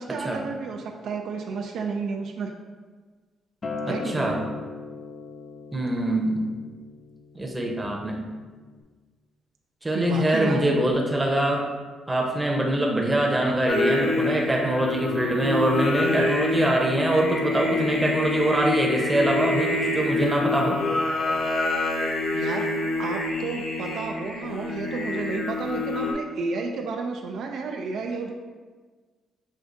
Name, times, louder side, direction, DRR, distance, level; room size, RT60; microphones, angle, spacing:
voice 1, 0.0-2.5 3.9-4.3 9.9-10.6 22.3-22.7 23.0-28.3, right 4 dB, 70° right, 3 dB, 0.3 m, -31 dB
Acoustic guitar, 3.6-8.8, left 4 dB, 35° left, 0.5 m, -39 dB
voice 2, 3.9-4.4 5.7-6.4 7.3-8.2 9.8-11.6 12.1-20.8, right 1 dB, 10° right, -1 dB, 0.7 m, -24 dB
Singing, 13.7-26.1, left 2 dB, 75° left, 0.7 m, -27 dB
6.2 x 2.4 x 2.5 m, 1.4 s
cardioid pair, 90°, 0 cm